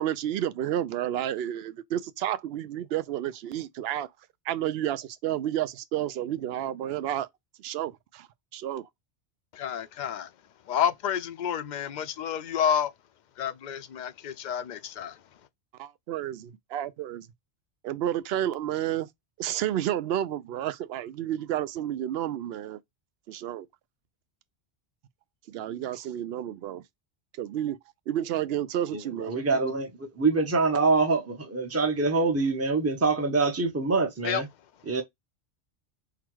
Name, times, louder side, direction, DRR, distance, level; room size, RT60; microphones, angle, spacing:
voice 1, 0.0-4.1 4.4-7.3 7.6-8.9 15.8-17.3 17.8-19.1 19.4-22.8 23.3-23.7 25.5-26.8 27.4-27.8 28.1-29.3, right 11 dB, 70° right, 0.8 m, -31 dB
voice 2, 9.5-10.3 10.7-12.9 13.4-15.2 34.2-34.4, left 8 dB, 55° left, 0.5 m, -29 dB
voice 3, 29.3-34.5 34.9-35.0, right 3 dB, 15° right, 0.7 m, -25 dB
3.9 x 2.2 x 4.5 m
omnidirectional pair, 1.1 m